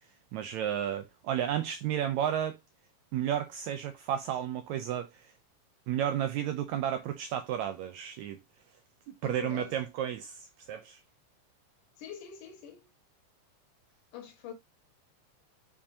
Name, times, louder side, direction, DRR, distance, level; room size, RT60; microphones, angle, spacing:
voice 1, 0.3-2.6 3.1-5.3 5.9-8.4 9.1-11.0, right 10 dB, 80° right, 1.7 m, -32 dB
voice 2, 9.2-9.8 12.0-12.9 14.1-14.5, left 9 dB, 70° left, 2.8 m, -44 dB
7.3 x 4.8 x 2.7 m
omnidirectional pair, 3.8 m